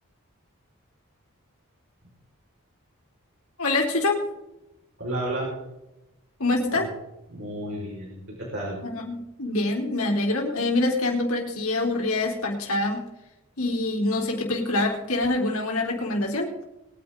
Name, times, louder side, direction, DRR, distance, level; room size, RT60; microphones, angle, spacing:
voice 1, 3.6-4.3 6.4-6.9 8.8-13.0 13.6-16.5, left 2 dB, 80° left, 0 dB, 3.6 m, -25 dB
voice 2, 5.0-5.5 6.7-6.9 7.3-8.8, right 1 dB, 60° right, -4 dB, 4.9 m, -32 dB
22.0 x 10.0 x 3.8 m, 0.94 s
head